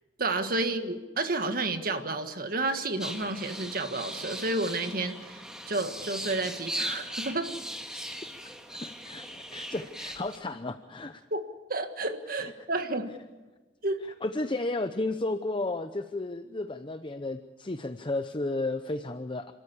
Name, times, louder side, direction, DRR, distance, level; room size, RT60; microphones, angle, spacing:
voice 1, 0.2-7.5 11.3-11.4 11.7-13.1 13.8-14.0, right 2 dB, 55° right, 7 dB, 1.7 m, -31 dB
sound 1, 3.0-10.4, equal, 5° right, 1.8 m, -39 dB
voice 2, 8.7-11.2 12.4-12.5 14.2-19.5, left 2 dB, 30° left, 9 dB, 0.7 m, -33 dB
29.0 x 13.5 x 8.4 m, 1.2 s
head